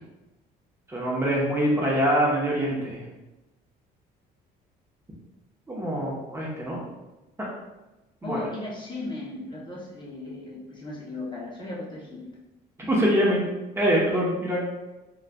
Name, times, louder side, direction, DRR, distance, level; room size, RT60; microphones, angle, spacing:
voice 1, 0.9-3.0 5.7-6.8 7.4-7.5 8.2-8.4 12.9-13.4 13.8-14.6, equal, 15° right, -4 dB, 0.9 m, -24 dB
voice 2, 8.2-12.2, left 2 dB, 25° left, -4 dB, 0.8 m, -36 dB
3.8 x 3.1 x 2.3 m, 1.0 s
cardioid pair, 110°, 17 cm